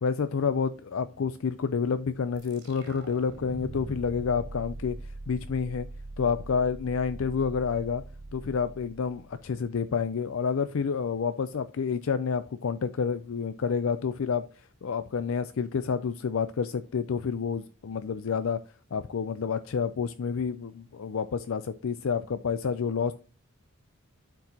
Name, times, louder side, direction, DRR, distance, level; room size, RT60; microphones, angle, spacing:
voice 1, 0.0-5.0 5.3-5.9 6.2-8.0 8.3-14.4 14.8-18.6 18.9-23.1, left 6 dB, 70° left, 0.4 m, -29 dB
sound 1, 2.3-9.6, right 2 dB, 65° right, 3.5 m, -42 dB
11.5 x 4.6 x 2.8 m
head